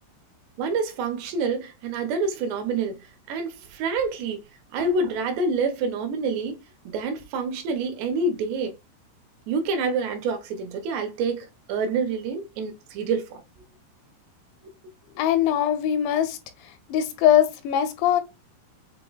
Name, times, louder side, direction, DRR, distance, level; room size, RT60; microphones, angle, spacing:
voice 1, 0.6-4.4 4.7-6.6 6.9-8.7 9.5-13.4, right 4 dB, 75° right, 2.8 m, -27 dB
voice 2, 15.2-16.4 16.6-18.2, left 10 dB, 80° left, 2.8 m, -22 dB
7.7 x 2.9 x 2.3 m
omnidirectional pair, 5.2 m